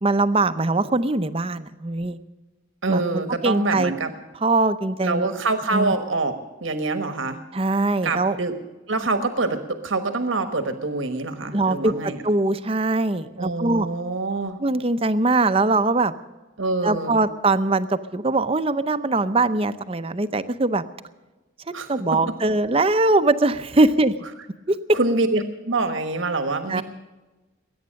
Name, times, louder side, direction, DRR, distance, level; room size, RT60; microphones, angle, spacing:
voice 1, 0.0-2.2 2.9-3.9 4.4-5.3 5.7-5.9 7.5-8.4 11.5-13.9 14.6-16.1 16.8-20.8 21.7-24.2 24.7-25.0 26.7-26.8, right 2 dB, 30° right, 12 dB, 0.7 m, -22 dB
voice 2, 2.8-4.1 5.0-6.3 6.6-7.4 8.0-8.5 8.9-12.2 13.4-14.6 16.6-17.2 21.7-21.9 24.9-26.8, right 3 dB, 75° right, 8 dB, 1.3 m, -25 dB
21.0 x 9.5 x 6.5 m, 1.2 s
head